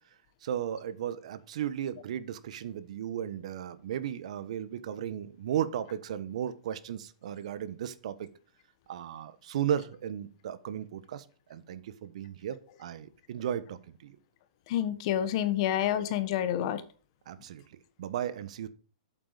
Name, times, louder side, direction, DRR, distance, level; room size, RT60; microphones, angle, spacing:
voice 1, 0.4-8.3 8.9-11.2 11.5-14.2 17.3-18.7, right 10 dB, 65° right, 1.2 m, -35 dB
voice 2, 14.7-16.8, left 11 dB, 50° left, 1.5 m, -28 dB
8.6 x 7.6 x 5.1 m
hypercardioid pair, 130°, 4 cm